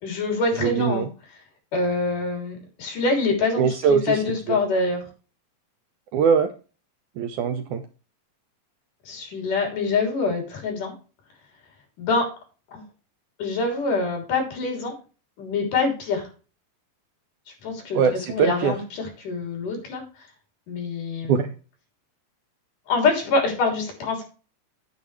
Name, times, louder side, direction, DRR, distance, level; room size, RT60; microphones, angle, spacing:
voice 1, 0.0-1.1 1.7-5.0 9.1-10.9 12.0-12.3 12.7-12.8 13.4-14.9 15.4-16.2 17.6-18.0 18.3-20.0 20.7-21.4 22.9-24.2, left 3 dB, 60° left, 2 dB, 4.7 m, -25 dB
voice 2, 0.6-1.1 3.6-4.6 6.1-6.5 7.2-7.8 17.9-18.7 21.3-21.5, right 7 dB, 75° right, 7 dB, 1.9 m, -22 dB
9.9 x 9.4 x 3.2 m, 0.35 s
omnidirectional pair, 4.2 m